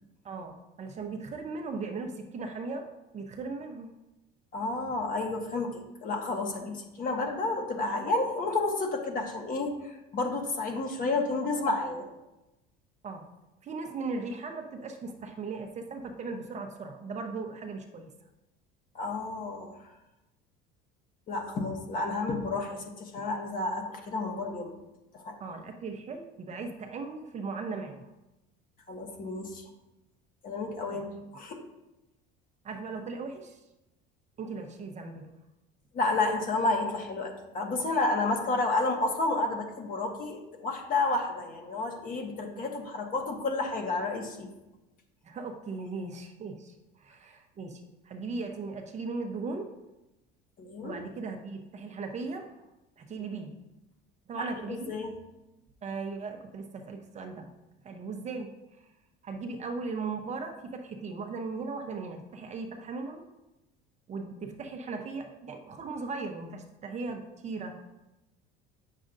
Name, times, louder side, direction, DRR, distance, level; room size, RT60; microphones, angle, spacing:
voice 1, 0.2-2.9 3.1-3.9 6.6-6.7 13.0-13.3 13.6-18.1 25.4-28.1 30.9-31.0 32.6-33.6 34.4-35.3 45.2-49.7 50.8-52.5 53.0-53.6 54.3-54.9 55.8-57.5 57.8-58.5 58.8-58.9 59.2-63.3 64.1-67.8, right 4 dB, 35° right, 4 dB, 0.7 m, -38 dB
voice 2, 4.5-12.1 18.9-19.7 21.3-24.7 25.1-25.4 28.9-29.6 30.4-31.1 31.3-31.6 35.9-44.5 50.6-50.9 54.4-55.1, left 2 dB, 40° left, 2 dB, 1.4 m, -31 dB
8.4 x 6.4 x 2.6 m, 0.98 s
cardioid pair, 125°, 21 cm